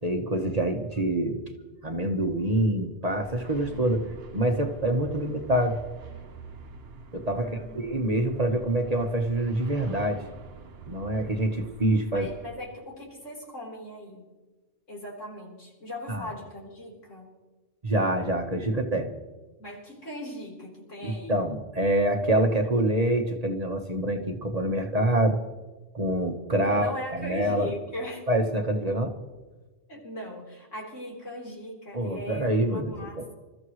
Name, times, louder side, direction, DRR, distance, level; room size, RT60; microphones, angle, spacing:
voice 1, 0.0-1.4 1.8-4.0 4.3-5.8 7.1-10.2 10.9-12.3 16.1-16.3 17.8-19.1 21.0-25.4 25.9-27.7 28.3-29.1 31.9-32.9, right 1 dB, 35° right, 3 dB, 1.3 m, -26 dB
sound 1, 3.2-12.6, right 4 dB, 55° right, 1.1 m, -46 dB
voice 2, 3.5-4.1 7.3-8.1 12.1-14.3 14.9-17.3 19.6-21.4 26.5-28.3 29.9-33.3, equal, 75° left, -2 dB, 4.3 m, -39 dB
27.5 x 14.0 x 3.2 m, 1.3 s
omnidirectional pair, 1.3 m